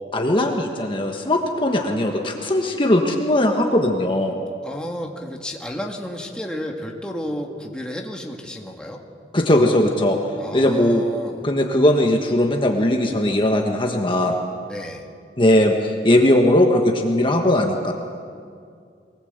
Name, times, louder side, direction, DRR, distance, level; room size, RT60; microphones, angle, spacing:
voice 1, 0.1-4.4 9.3-10.2 10.5-11.1 11.4-14.3 15.4-17.9, left 1 dB, 30° left, 2 dB, 1.4 m, -19 dB
voice 2, 4.6-9.0 10.4-11.4 14.6-15.1, equal, 5° left, 0 dB, 1.8 m, -32 dB
23.0 x 19.0 x 8.1 m, 2.3 s
head